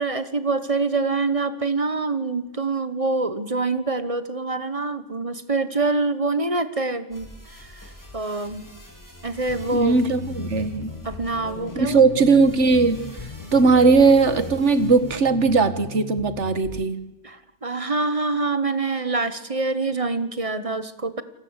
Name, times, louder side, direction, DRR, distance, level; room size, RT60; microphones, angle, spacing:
voice 1, 0.0-7.8 8.1-8.6 9.2-10.0 11.0-12.0 17.2-21.2, right 3 dB, 30° right, 12 dB, 1.3 m, -25 dB
sound 1, 7.1-15.2, left 1 dB, 15° left, 4.6 m, -45 dB
sound 2, 9.5-16.9, left 4 dB, 35° left, 1.3 m, -37 dB
voice 2, 9.7-10.9 11.7-13.0 13.5-17.0, right 4 dB, 80° right, 12 dB, 1.8 m, -18 dB
28.5 x 19.0 x 8.2 m, 0.95 s
omnidirectional pair, 1.2 m